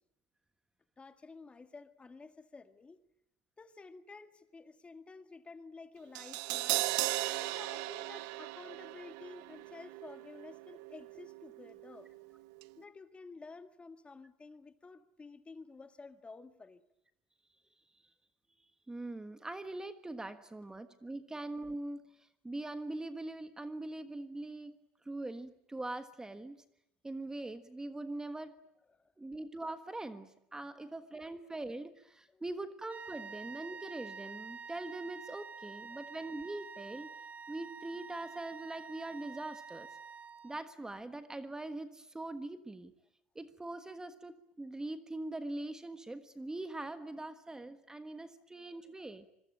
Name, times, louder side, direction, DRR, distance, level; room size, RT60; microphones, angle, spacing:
voice 1, 1.0-3.0 3.6-7.0 7.4-12.1 12.8-16.8 28.9-29.0 31.2-31.3 32.3-32.4 35.9-36.0 48.8-48.9, left 4 dB, 20° left, 1.9 m, -52 dB
Crash cymbal, 6.2-12.3 12.6-12.7, right 19 dB, 80° right, 1.1 m, -38 dB
voice 2, 18.9-24.7 25.0-26.6 27.0-28.6 29.2-37.1 37.5-39.9 40.4-42.9 43.3-49.3, right 2 dB, 10° right, 1.4 m, -42 dB
sound 1, 32.9-40.8, right 5 dB, 30° right, 2.9 m, -48 dB
25.5 x 22.0 x 9.1 m
supercardioid pair, 110°, 6 cm